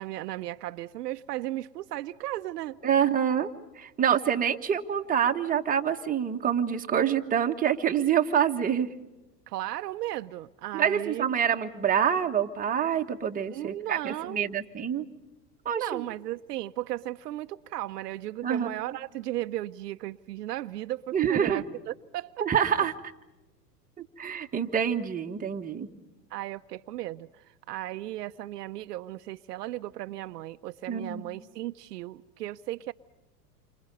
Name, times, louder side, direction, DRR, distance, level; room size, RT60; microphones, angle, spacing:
voice 1, 0.0-2.8 4.1-4.2 9.5-11.4 13.5-14.5 15.7-22.5 26.3-32.9, right 15 dB, 70° right, 0.9 m, -36 dB
voice 2, 2.8-8.9 10.7-15.0 15.6-16.0 18.4-18.7 21.1-21.6 22.4-22.9 24.0-25.9 30.9-31.2, right 8 dB, 15° right, 1.5 m, -26 dB
29.0 x 26.0 x 5.4 m
hypercardioid pair, 110°, 49 cm